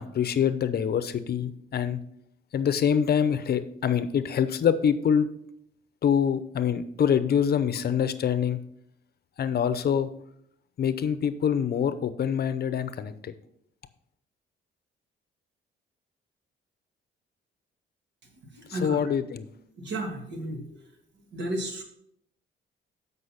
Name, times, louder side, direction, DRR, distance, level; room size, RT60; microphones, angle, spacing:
voice 1, 0.0-2.0 2.5-5.3 6.0-8.6 9.4-10.1 10.8-13.3 18.7-19.5, left 8 dB, 50° left, 13 dB, 0.7 m, -25 dB
voice 2, 18.5-19.1 19.8-20.8 21.3-21.8, right 1 dB, 65° right, 3 dB, 2.2 m, -33 dB
8.0 x 5.5 x 5.7 m, 0.71 s
cardioid pair, 90°, 20 cm